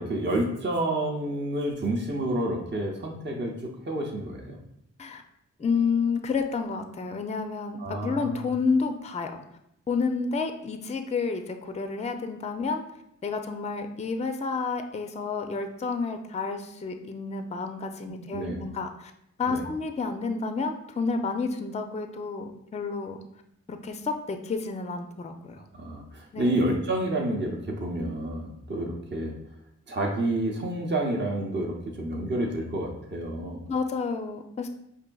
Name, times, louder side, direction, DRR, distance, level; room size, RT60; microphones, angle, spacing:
voice 1, 0.0-4.6 7.8-8.4 18.1-18.6 19.5-19.6 25.7-29.3 29.9-33.6, right 1 dB, 35° right, 0 dB, 0.7 m, -29 dB
voice 2, 5.6-9.3 9.9-12.8 13.2-19.1 19.4-23.2 23.7-25.7 26.3-26.6 33.7-34.7, left 4 dB, 20° left, 6 dB, 0.4 m, -30 dB
4.9 x 2.6 x 2.2 m, 0.78 s
supercardioid pair, 40°, 32 cm